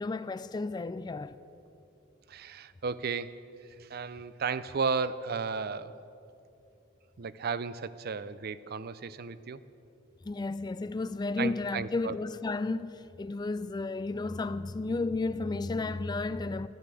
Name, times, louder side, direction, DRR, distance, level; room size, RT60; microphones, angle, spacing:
voice 1, 0.0-1.4 10.2-16.7, left 3 dB, 20° left, 0.3 m, -33 dB
voice 2, 2.3-3.3 3.8-5.9 7.2-9.6 11.4-12.2, right 5 dB, 50° right, 0.5 m, -34 dB
13.0 x 12.0 x 8.3 m
head